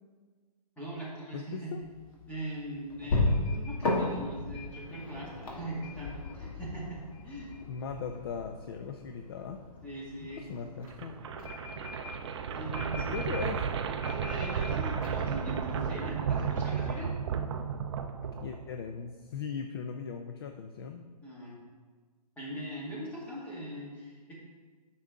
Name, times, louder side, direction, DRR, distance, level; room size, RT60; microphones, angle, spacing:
voice 1, 0.8-1.7 2.3-7.5 9.8-10.4 12.3-13.1 14.0-17.1 21.2-21.6 22.4-24.4, right 1 dB, 5° left, -7 dB, 2.0 m, -41 dB
voice 2, 1.3-1.8 7.7-9.6 10.2-11.2 13.0-13.7 18.4-21.1, left 6 dB, 35° left, 5 dB, 0.4 m, -39 dB
sound 1, 1.8-16.2, left 2 dB, 55° left, 2.2 m, -37 dB
sound 2, 10.9-18.9, right 7 dB, 40° right, 0.5 m, -33 dB
9.6 x 6.0 x 3.7 m, 1.4 s
hypercardioid pair, 155°, 21 cm